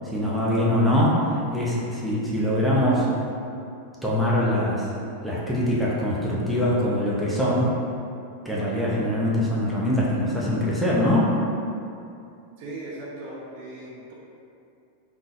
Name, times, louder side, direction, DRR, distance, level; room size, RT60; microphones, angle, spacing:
voice 1, 0.1-3.1 4.0-4.9 5.2-7.7 8.4-11.4, left 1 dB, ahead, -7 dB, 0.7 m, -23 dB
voice 2, 12.6-14.1, right 2 dB, 50° right, -4 dB, 0.7 m, -38 dB
3.6 x 3.3 x 2.5 m, 2.6 s
figure-of-eight pair, 90°, 0 cm